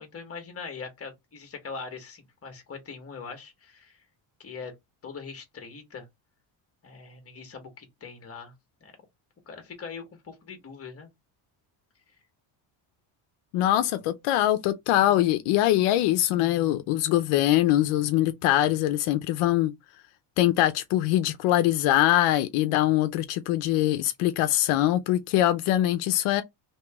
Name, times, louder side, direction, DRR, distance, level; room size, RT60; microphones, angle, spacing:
voice 1, 0.0-4.1 4.4-4.7 5.0-6.1 6.8-8.5 8.8-8.9 9.4-11.1, left 5 dB, 30° left, 1.4 m, -41 dB
voice 2, 13.5-19.7 20.4-26.4, left 14 dB, 85° left, 0.7 m, -23 dB
3.0 x 2.9 x 3.4 m
cardioid pair, 130°, 50 cm